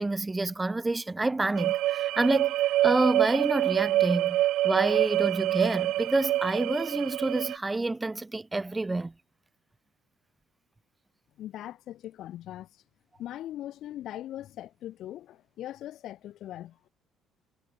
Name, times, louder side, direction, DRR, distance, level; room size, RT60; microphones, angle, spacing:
voice 1, 0.0-9.1, right 2 dB, 10° right, 0.5 m, -28 dB
sound 1, 1.6-7.6, right 15 dB, 70° right, 0.5 m, -26 dB
voice 2, 11.4-12.7 13.2-16.9, left 13 dB, 60° left, 2.0 m, -40 dB
cardioid pair, 155°, 0 cm